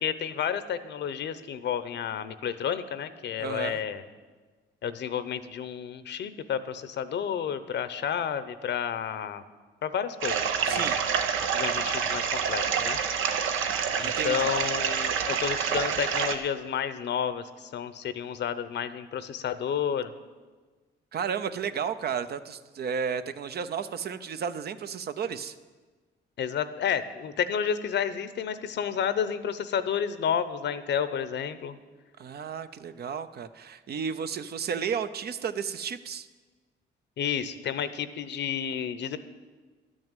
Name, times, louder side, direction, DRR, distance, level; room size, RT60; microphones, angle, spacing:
voice 1, 0.0-4.0 4.8-9.4 9.8-11.0 11.5-13.0 14.0-20.1 26.4-31.8 37.2-39.2, left 8 dB, 60° left, 13 dB, 0.8 m, -31 dB
voice 2, 3.4-3.8 10.6-11.0 14.0-14.5 21.1-25.5 32.2-36.3, right 7 dB, 55° right, 11 dB, 0.7 m, -33 dB
sound 1, 10.2-16.4, right 7 dB, 85° right, 0.9 m, -27 dB
12.0 x 6.4 x 9.0 m, 1.4 s
cardioid pair, 90°, 20 cm